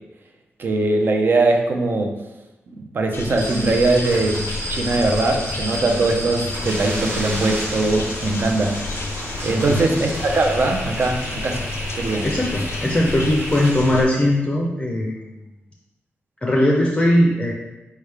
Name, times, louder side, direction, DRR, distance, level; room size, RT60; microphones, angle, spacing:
voice 1, 0.6-2.1 2.7-4.4 4.7-9.1 9.4-11.6 12.0-12.3, right 2 dB, 50° right, 3 dB, 0.6 m, -21 dB
sound 1, 3.1-14.0, left 3 dB, 75° left, 0.5 m, -31 dB
sound 2, 3.4-14.0, right 1 dB, 80° right, 1.4 m, -31 dB
voice 2, 12.2-15.3 16.4-17.5, left 1 dB, 25° left, -2 dB, 0.5 m, -19 dB
4.6 x 3.4 x 3.3 m, 1.0 s
wide cardioid pair, 130°, 5 cm